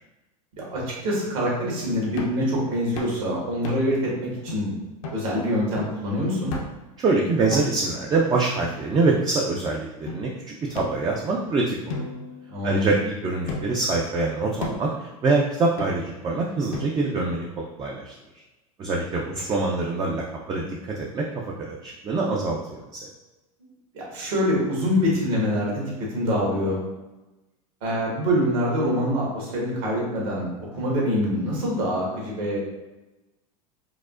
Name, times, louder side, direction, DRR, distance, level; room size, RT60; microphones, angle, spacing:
voice 1, 0.7-4.7 5.1-6.5 12.5-12.9 23.9-26.8 27.8-30.5 30.7-32.6, equal, 70° right, -4 dB, 1.5 m, -25 dB
sound 1, 2.2-2.4 3.0-3.2 3.6-4.0 4.5-4.6 5.0-5.2 5.8-6.0 6.5-6.9 7.5-8.0 8.6-9.3 10.1-10.2 10.7-11.4 11.9-12.9 13.5-13.9 14.6-15.0 15.8-16.2 16.7-17.2, left 3 dB, 70° left, 0.7 m, -35 dB
voice 2, 7.0-11.8 12.6-18.1 18.8-23.0, right 3 dB, 25° right, -2 dB, 0.4 m, -25 dB
4.7 x 2.0 x 2.4 m, 1.1 s
hypercardioid pair, 100°, 19 cm